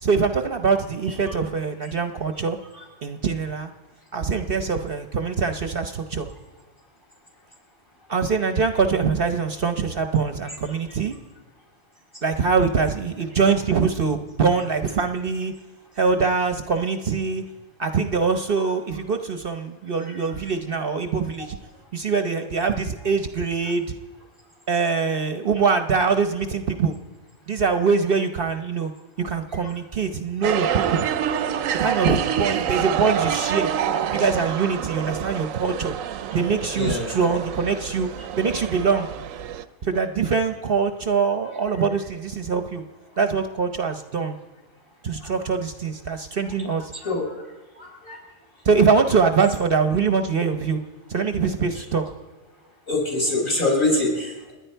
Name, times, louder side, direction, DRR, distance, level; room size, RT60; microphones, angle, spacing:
voice 1, 0.0-2.6 3.0-3.7 4.1-6.3 8.1-11.1 12.2-15.5 16.0-17.4 17.8-21.6 21.9-23.9 24.7-26.9 27.5-28.9 29.2-31.1 31.8-33.7 34.1-35.9 36.3-38.1 38.4-39.1 39.8-42.8 43.2-44.4 45.0-46.9 48.6-50.8 51.1-52.0, right 5 dB, 50° right, 7 dB, 0.9 m, -23 dB
sound 1, 30.4-39.7, right 9 dB, 85° right, 1.1 m, -27 dB
voice 2, 47.8-48.2 52.9-54.5, left 2 dB, 40° left, -3 dB, 5.9 m, -24 dB
29.5 x 10.0 x 4.5 m, 1.2 s
omnidirectional pair, 1.3 m